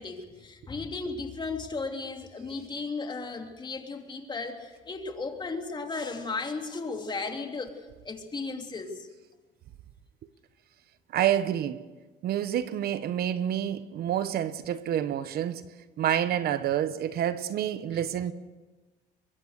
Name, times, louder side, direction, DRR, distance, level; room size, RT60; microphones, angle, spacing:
voice 1, 0.0-7.8 8.0-9.1, left 3 dB, 25° left, 3.2 m, -35 dB
voice 2, 11.1-11.8 12.2-15.6 16.0-18.3, right 10 dB, 60° right, 1.1 m, -28 dB
23.0 x 22.0 x 6.7 m
cardioid pair, 110°, 18 cm